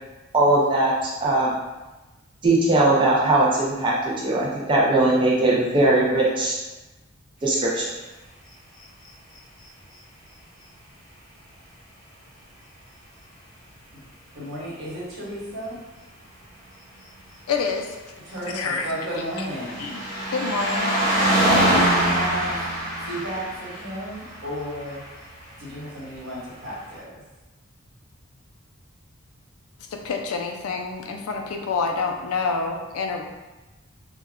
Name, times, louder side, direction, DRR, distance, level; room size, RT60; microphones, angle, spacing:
voice 1, 0.3-1.6 2.4-6.5 7.4-7.9, right 2 dB, 20° right, -5 dB, 0.3 m, -20 dB
voice 2, 14.3-15.8 18.2-19.9 21.7-22.7 23.0-25.0 25.6-27.2, right 1 dB, 70° right, -8 dB, 1.2 m, -33 dB
voice 3, 17.5-17.9 18.5-18.9 19.8-20.0 20.3-20.9 29.9-33.2, left 4 dB, 90° left, 3 dB, 0.4 m, -27 dB
sound 1, 18.5-25.2 26.2-26.3, right 1 dB, 20° left, 1.0 m, -24 dB
2.2 x 2.1 x 3.5 m, 1.1 s
head